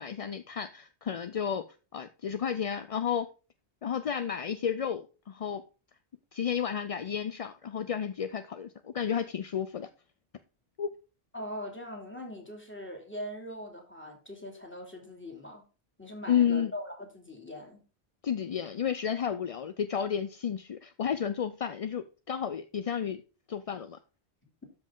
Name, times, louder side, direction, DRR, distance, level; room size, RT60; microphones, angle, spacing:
voice 1, 0.0-1.7 1.9-3.3 3.8-5.6 6.3-9.9 10.8-10.9 16.3-16.7 18.2-23.2 23.5-24.0, left 8 dB, 45° left, 0.5 m, -32 dB
voice 2, 11.3-15.6 16.0-17.8, equal, 10° left, 2.7 m, -41 dB
13.0 x 5.3 x 3.7 m
omnidirectional pair, 1.1 m